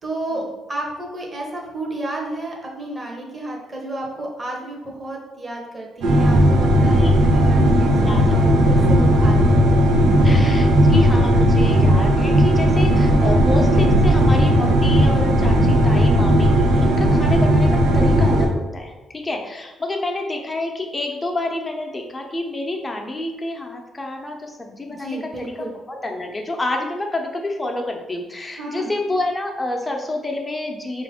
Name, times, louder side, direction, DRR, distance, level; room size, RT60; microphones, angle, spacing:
voice 1, 0.0-9.6 10.3-10.4 24.9-25.7 28.6-29.0, right 1 dB, 25° right, -2 dB, 1.0 m, -32 dB
sound 1, 6.0-18.5, equal, 85° right, 0.7 m, -15 dB
voice 2, 6.8-7.1 8.0-8.4 10.2-25.5 25.9-31.0, left 2 dB, 20° left, 2 dB, 0.7 m, -28 dB
4.4 x 2.5 x 3.6 m, 1.1 s
cardioid pair, 90°, 0 cm